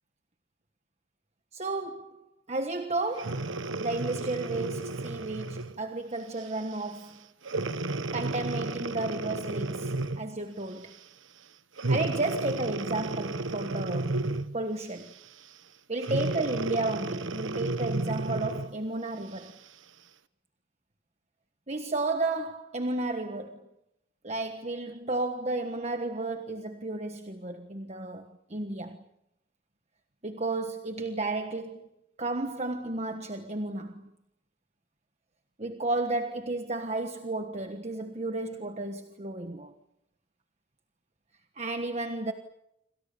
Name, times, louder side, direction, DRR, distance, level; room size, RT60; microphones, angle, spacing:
voice 1, 1.5-2.2 2.5-3.5 3.8-7.3 8.1-10.9 11.9-14.3 14.5-15.1 15.9-19.6 21.7-23.7 24.2-29.0 30.2-31.9 32.2-34.0 35.6-39.7 41.6-42.3, right 2 dB, 35° right, 1.4 m, -33 dB
Breathing, 3.1-5.8 6.4-6.6 7.4-10.3 11.8-14.6 16.0-18.7 19.4-19.5, right 2 dB, 90° right, 1.2 m, -32 dB
28.5 x 25.5 x 6.9 m
head